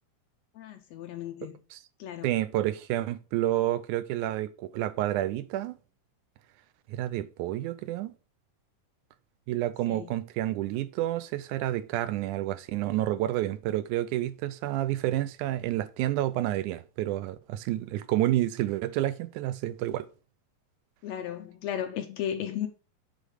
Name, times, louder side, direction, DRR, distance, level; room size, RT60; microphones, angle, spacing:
voice 1, 0.5-1.6 2.0-2.3 9.9-10.2 21.0-22.7, left 10 dB, 75° left, 1.7 m, -35 dB
voice 2, 2.2-5.8 6.9-8.1 9.5-20.1, right 14 dB, 80° right, 2.0 m, -29 dB
8.1 x 4.1 x 5.0 m
omnidirectional pair, 3.6 m